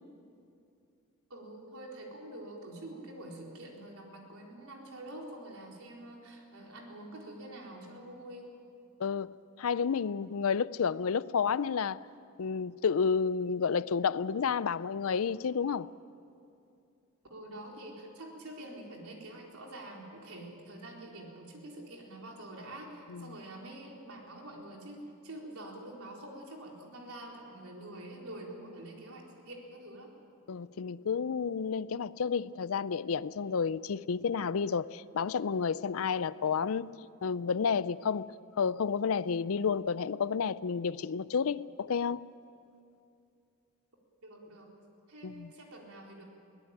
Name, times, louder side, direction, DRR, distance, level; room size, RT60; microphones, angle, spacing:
voice 1, 1.3-8.5 17.3-30.1 44.2-44.7 45.1-46.2, right 1 dB, 75° right, 4.2 m, -46 dB
voice 2, 9.0-12.1 12.4-15.9 23.1-23.3 30.5-37.0 37.2-42.2 45.2-45.5, left 6 dB, 70° left, 0.5 m, -31 dB
23.0 x 17.5 x 8.9 m
head